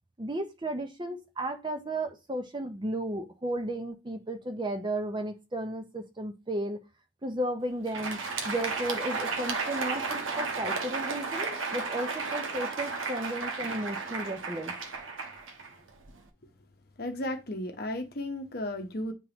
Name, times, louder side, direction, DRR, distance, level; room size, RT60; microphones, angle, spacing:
voice 1, 0.2-6.8 7.2-8.2 8.5-14.7, right 1 dB, 25° right, 0.6 m, -34 dB
Crowd, 7.7-16.2, right 4 dB, 85° right, 1.1 m, -34 dB
voice 2, 17.0-19.1, left 1 dB, 50° left, 0.9 m, -34 dB
9.0 x 3.6 x 2.9 m
head